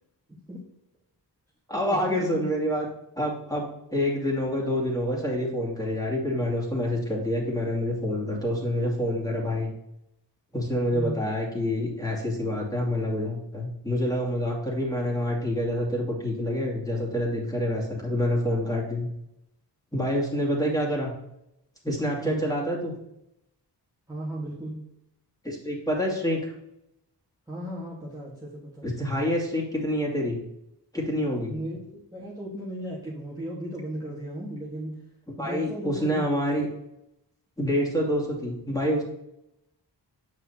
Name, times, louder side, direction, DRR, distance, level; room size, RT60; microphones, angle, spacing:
voice 1, 0.3-0.6 1.9-2.5 10.9-11.3 22.2-22.5 24.1-24.8 27.5-28.9 31.5-35.0 35.4-36.2, equal, 10° right, -7 dB, 1.6 m, -36 dB
voice 2, 1.7-2.9 3.2-9.7 10.5-19.1 19.9-21.1 21.8-23.0 25.4-26.5 28.8-30.4 30.9-31.5 35.4-36.7 37.6-39.0, equal, 10° left, -4 dB, 2.5 m, -27 dB
7.9 x 5.3 x 2.9 m, 0.82 s
wide cardioid pair, 80°, 42 cm